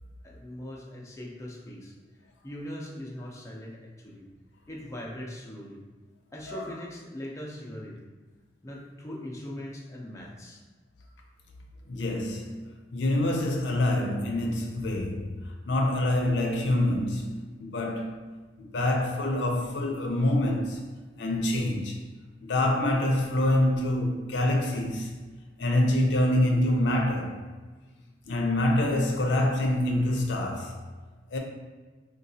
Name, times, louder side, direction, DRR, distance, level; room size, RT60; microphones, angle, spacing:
voice 1, 0.2-1.9 2.4-4.3 4.7-5.8 6.3-8.0 8.6-10.6, left 1 dB, 15° left, 0.5 m, -40 dB
voice 2, 11.9-12.6 12.9-15.4 15.7-17.3 17.6-18.3 18.6-20.8 21.2-22.0 22.4-25.2 25.6-27.4 28.3-30.8 31.3-31.4, left 1 dB, 85° left, 0.5 m, -26 dB
3.8 x 2.3 x 2.6 m
head